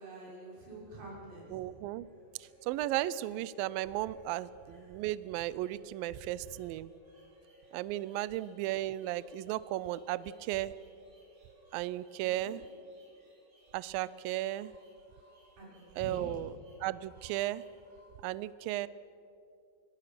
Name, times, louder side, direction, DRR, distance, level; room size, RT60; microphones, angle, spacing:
voice 1, 0.0-1.6 12.2-12.6 15.6-15.7 16.0-16.4, right 2 dB, 50° right, -6 dB, 7.7 m, -46 dB
sound 1, 1.3-18.0, right 1 dB, 30° right, 4.8 m, -62 dB
voice 2, 1.5-2.1 2.6-6.9 7.7-10.7 11.7-12.6 13.7-14.7 16.0-16.5 16.8-17.6 18.2-18.9, right 15 dB, 90° right, 17 dB, 2.0 m, -35 dB
25.5 x 18.5 x 6.0 m, 2.6 s
omnidirectional pair, 4.8 m